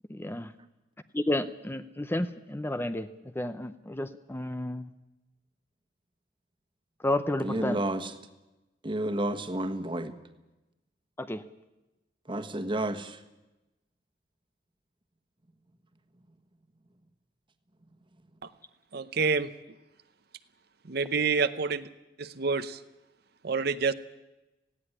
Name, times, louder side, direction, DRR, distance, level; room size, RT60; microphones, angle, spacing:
voice 1, 0.1-0.5 1.1-3.1 3.4-4.9 7.0-7.8 11.2-11.4, left 1 dB, 10° left, 11 dB, 0.6 m, -31 dB
voice 2, 7.4-8.1 8.8-10.1 12.3-13.2, right 1 dB, 25° right, 9 dB, 1.5 m, -31 dB
voice 3, 18.9-19.5 20.9-21.9 22.2-22.8 23.4-23.9, right 4 dB, 60° right, 11 dB, 0.8 m, -27 dB
18.0 x 16.0 x 9.9 m, 1.0 s
head